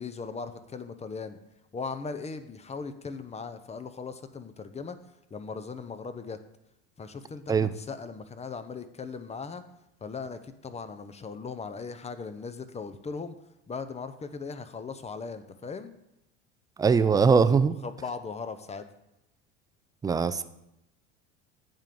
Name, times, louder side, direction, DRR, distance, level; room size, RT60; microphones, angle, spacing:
voice 1, 0.0-1.4 1.7-5.0 5.3-6.4 7.0-9.6 10.0-13.4 13.7-15.9 17.8-18.9, left 5 dB, 20° left, 11 dB, 0.6 m, -38 dB
voice 2, 16.8-17.8 20.0-20.4, right 5 dB, 10° right, 13 dB, 0.3 m, -21 dB
9.0 x 3.7 x 6.8 m, 0.86 s
hypercardioid pair, 85°, 33 cm